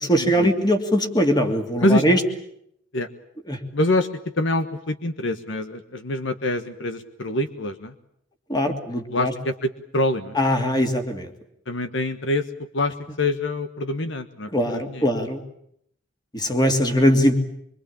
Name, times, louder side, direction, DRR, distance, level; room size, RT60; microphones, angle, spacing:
voice 1, 0.1-2.2 3.5-3.6 8.5-9.3 10.4-11.3 14.5-15.4 16.3-17.4, equal, 20° left, 5 dB, 2.9 m, -21 dB
voice 2, 3.7-4.1 4.4-7.9 9.1-10.3 11.7-12.4 12.7-15.1, left 1 dB, 70° left, 9 dB, 1.4 m, -25 dB
24.5 x 24.0 x 8.7 m, 0.72 s
head